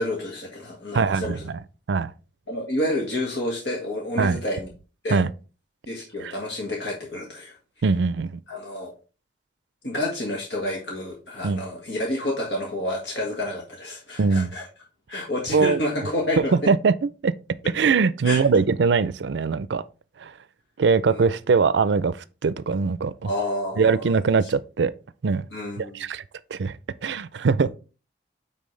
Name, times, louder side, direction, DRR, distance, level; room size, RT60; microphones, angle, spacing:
voice 1, 0.0-1.5 2.5-4.7 5.0-5.2 5.9-7.5 8.5-8.9 9.8-14.6 15.1-16.7 18.2-18.5 21.1-21.3 23.2-24.1 24.4-24.5 25.5-26.0 27.6-27.7, left 1 dB, 90° left, 1.7 m, -29 dB
voice 2, 0.9-1.6 1.9-2.1 4.2-4.4 5.1-5.3 6.2-6.3 7.8-8.4 11.4-11.6 14.2-14.5 15.5-15.8 16.4-16.9 17.2-17.3 17.7-19.8 20.2-20.3 20.8-22.2 22.4-23.3 23.8-24.9 25.2-25.5 25.8-26.2 26.5-26.7 27.0-27.7, right 5 dB, 90° right, 0.4 m, -21 dB
9.1 x 4.1 x 3.2 m
head